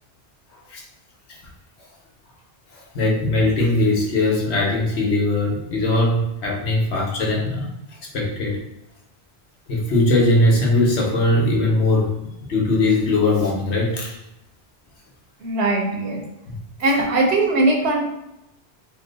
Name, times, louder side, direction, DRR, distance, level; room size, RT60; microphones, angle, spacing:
voice 1, 2.9-7.7 8.1-8.6 9.7-12.1 12.5-14.2, left 2 dB, 80° left, -2 dB, 1.1 m, -20 dB
voice 2, 15.4-16.2 16.8-18.0, right 2 dB, 75° right, 0 dB, 1.0 m, -20 dB
2.9 x 2.1 x 3.8 m, 0.89 s
omnidirectional pair, 1.1 m